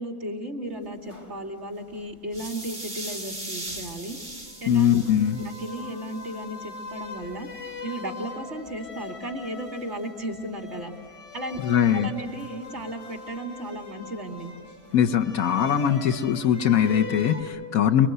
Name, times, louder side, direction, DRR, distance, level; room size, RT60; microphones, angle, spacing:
voice 1, 0.0-4.2 4.6-4.9 5.4-10.9 11.3-11.6 11.9-14.5, right 1 dB, 50° right, 2 dB, 2.9 m, -35 dB
sound 1, 0.8-3.4 3.7-17.4, left 4 dB, 55° left, 3.8 m, -42 dB
sound 2, 2.3-6.4, right 1 dB, 20° right, 4.2 m, -39 dB
voice 2, 4.7-5.4 11.6-12.1 14.9-18.1, left 9 dB, 70° left, 6 dB, 1.3 m, -21 dB
29.5 x 22.5 x 8.0 m, 2.1 s
omnidirectional pair, 1.6 m